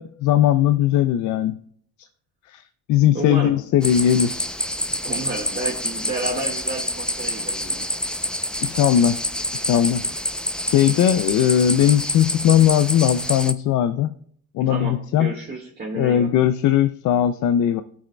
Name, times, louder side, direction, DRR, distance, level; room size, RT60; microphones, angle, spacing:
voice 1, 0.0-1.6 2.5-2.6 2.9-4.4 8.6-9.2 9.5-10.0 10.6-14.1 14.5-15.3 15.9-17.8, left 10 dB, 75° left, 11 dB, 0.5 m, -19 dB
voice 2, 3.1-3.5 5.0-7.9 14.6-16.3, right 2 dB, 35° right, -4 dB, 1.6 m, -30 dB
sound 1, 3.8-13.5, left 1 dB, 5° left, 0.5 m, -27 dB
17.5 x 6.2 x 2.2 m, 0.63 s
cardioid pair, 90°, 30 cm